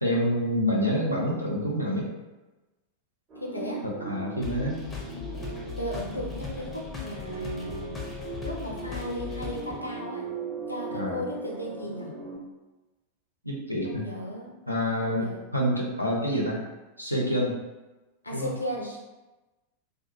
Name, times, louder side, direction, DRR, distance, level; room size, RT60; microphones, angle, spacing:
voice 1, 0.0-2.1 3.8-4.8 10.9-11.2 13.4-14.0 14.7-16.6 17.0-17.6 18.3-18.5, equal, 90° right, -3 dB, 0.5 m, -27 dB
sound 1, 3.3-12.4, right 3 dB, 25° right, 0.9 m, -38 dB
voice 2, 3.4-3.8 5.8-8.0 8.4-10.3 10.7-12.1 13.8-14.5 15.0-15.4 18.2-19.0, equal, 85° left, -1 dB, 0.5 m, -35 dB
sound 2, 4.4-9.8, left 4 dB, 15° left, 0.5 m, -38 dB
2.3 x 2.1 x 2.8 m, 1.1 s
figure-of-eight pair, 90°, 0 cm